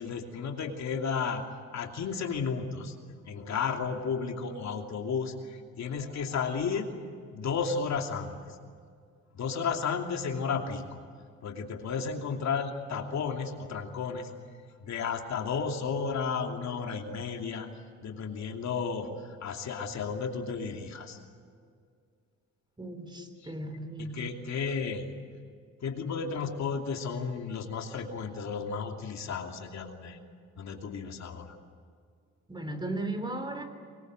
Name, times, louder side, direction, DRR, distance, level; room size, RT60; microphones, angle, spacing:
voice 1, 0.0-1.4 1.7-3.0 3.3-6.9 7.3-8.4 9.3-10.8 11.4-14.3 14.8-17.7 18.0-21.2 23.2-23.5 24.0-25.1 25.8-30.2 30.6-31.5, left 5 dB, 65° left, 3 dB, 2.8 m, -33 dB
voice 2, 22.8-24.3 32.5-33.6, right 2 dB, 15° right, 8 dB, 3.6 m, -36 dB
24.5 x 21.5 x 7.9 m, 2.2 s
cardioid pair, 90°, 30 cm